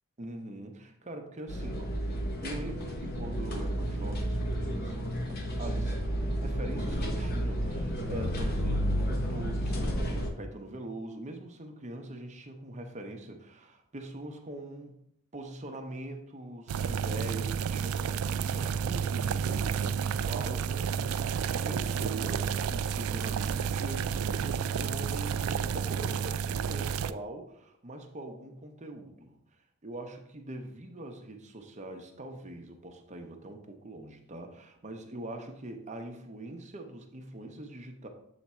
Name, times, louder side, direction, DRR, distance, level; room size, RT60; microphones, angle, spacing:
voice 1, 0.2-2.2 2.4-5.9 6.4-15.0 15.3-29.4 29.8-38.1, right 1 dB, 35° right, 4 dB, 0.7 m, -43 dB
sound 1, 1.5-10.3, equal, 45° left, 0.9 m, -31 dB
sound 2, 16.7-27.1, right 7 dB, 80° right, 0.3 m, -31 dB
7.3 x 3.5 x 4.2 m, 0.73 s
head